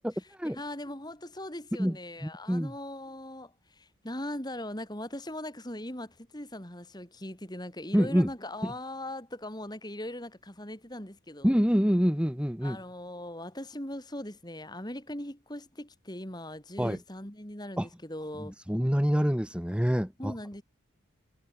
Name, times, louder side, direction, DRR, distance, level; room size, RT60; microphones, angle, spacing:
voice 1, 0.4-11.5 12.6-18.5 20.2-20.6, left 1 dB, 20° left, 3.9 m, -40 dB
voice 2, 2.2-2.7 7.9-8.3 8.6-8.7 11.4-12.8 16.8-17.0 17.8-17.9 18.4-20.3, equal, 5° right, 1.9 m, -26 dB
head